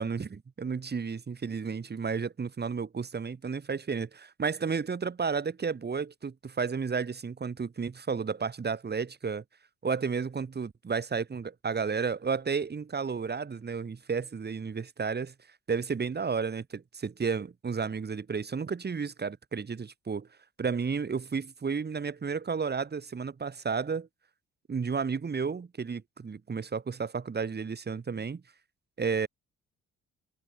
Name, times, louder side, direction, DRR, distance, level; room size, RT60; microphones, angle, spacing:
voice 1, 0.0-9.4 9.8-15.3 15.7-20.3 20.6-24.1 24.7-28.4 29.0-29.3, right 5 dB, 35° right, 2.7 m, -32 dB
cardioid pair, 90°, 30 cm